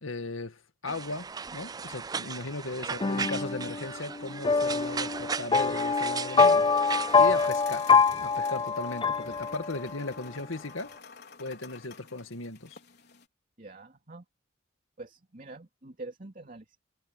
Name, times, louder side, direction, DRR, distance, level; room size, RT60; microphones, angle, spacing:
voice 1, 0.0-10.9 11.4-12.8, left 2 dB, 85° left, 2.1 m, -37 dB
sound 1, 0.9-7.5, right 5 dB, 20° right, 0.4 m, -37 dB
voice 2, 2.8-3.3 13.6-14.2 15.0-16.8, right 2 dB, 40° right, 2.8 m, -45 dB
sound 2, 3.0-10.0, left 5 dB, 25° left, 0.6 m, -25 dB
sound 3, 6.6-13.3, left 6 dB, 55° left, 4.5 m, -50 dB
head